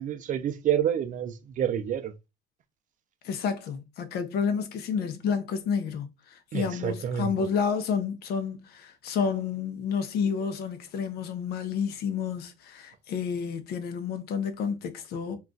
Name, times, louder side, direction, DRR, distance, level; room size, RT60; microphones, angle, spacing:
voice 1, 0.0-2.1 6.5-7.3, right 9 dB, 50° right, 0.5 m, -28 dB
voice 2, 3.2-15.4, left 6 dB, 70° left, 0.7 m, -30 dB
2.4 x 2.3 x 3.8 m
cardioid pair, 110°, 17 cm